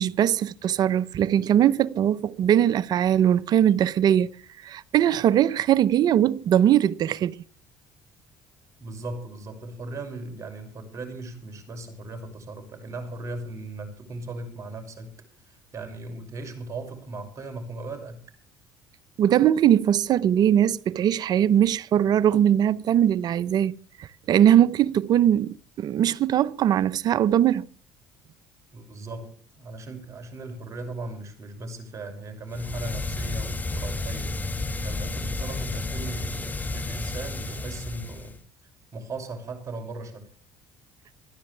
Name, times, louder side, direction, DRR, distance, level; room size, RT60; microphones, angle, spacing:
voice 1, 0.0-4.3 4.6-7.4 19.2-27.7, right 10 dB, 55° right, 0.8 m, -21 dB
voice 2, 8.8-15.1 15.4-18.2 28.7-34.4 34.8-38.4 38.9-40.3, right 2 dB, 40° right, 6.3 m, -37 dB
sound 1, 32.5-38.4, left 2 dB, 20° left, 2.4 m, -31 dB
27.0 x 10.5 x 3.4 m
supercardioid pair, 90°, 8 cm